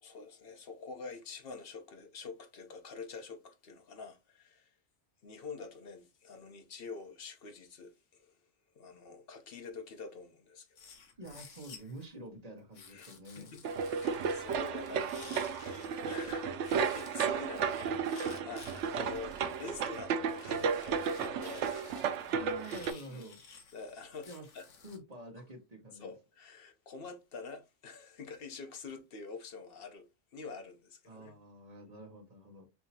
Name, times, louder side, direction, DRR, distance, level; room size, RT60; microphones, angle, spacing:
voice 1, 0.0-4.7 5.2-8.4 8.7-10.9 12.9-13.6 13.9-21.7 23.1-23.3 23.7-24.3 24.5-24.7 26.0-30.1 30.3-31.4, left 4 dB, 55° left, 1.0 m, -47 dB
sound 1, 10.8-12.1 12.7-16.3 16.6-25.0, left 5 dB, 75° left, 1.3 m, -55 dB
voice 2, 11.2-13.5 22.3-23.4 24.3-24.5 24.8-26.1 31.1-32.7, right 1 dB, 35° right, 1.2 m, -48 dB
sound 2, 13.6-22.9, right 6 dB, 75° right, 0.9 m, -33 dB
5.8 x 2.8 x 2.7 m
omnidirectional pair, 1.2 m